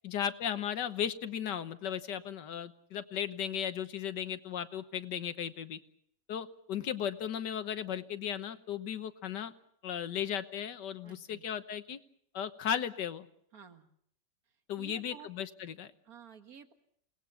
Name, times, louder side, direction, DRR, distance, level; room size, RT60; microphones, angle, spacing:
voice 1, 0.0-5.8 6.3-9.5 9.8-12.0 12.3-13.3 14.7-15.9, left 9 dB, 75° left, 11 dB, 1.8 m, -36 dB
voice 2, 11.0-11.4 13.5-13.9 14.8-15.3 16.1-16.7, right 5 dB, 55° right, 7 dB, 2.2 m, -52 dB
28.5 x 19.5 x 7.1 m, 0.68 s
omnidirectional pair, 1.9 m